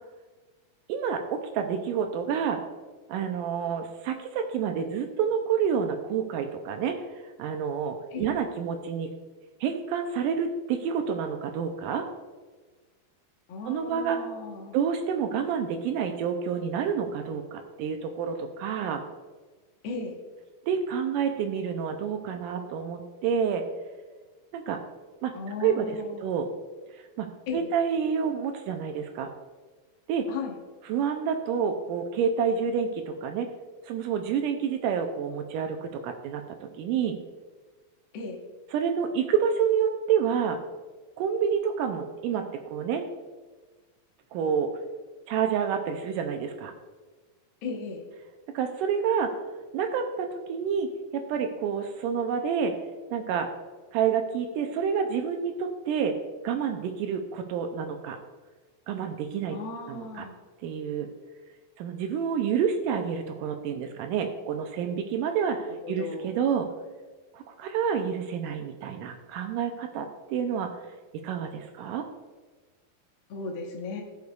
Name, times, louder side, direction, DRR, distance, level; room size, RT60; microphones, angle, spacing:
voice 1, 0.9-2.6 3.1-9.1 9.6-12.0 13.7-14.2 14.7-19.0 20.7-23.6 24.5-24.8 25.2-25.3 25.6-26.5 26.9-27.3 27.5-29.3 30.1-30.3 30.9-33.5 33.9-37.2 38.7-40.6 41.2-43.0 44.3-44.7 45.3-46.7 48.5-49.3 49.7-52.7 53.1-53.5 53.9-56.2 56.4-58.2 58.9-59.6 59.9-60.2 60.6-61.1 61.8-66.7 67.3-70.7 71.2-72.0, right 7 dB, 80° right, 5 dB, 2.0 m, -28 dB
voice 2, 13.5-14.7 19.8-20.2 25.3-26.2 27.5-27.7 30.3-30.6 38.1-38.4 47.6-48.0 59.5-60.3 65.8-66.3 73.3-74.0, left 4 dB, 80° left, 0 dB, 1.1 m, -36 dB
15.5 x 6.5 x 2.3 m, 1.3 s
omnidirectional pair, 4.2 m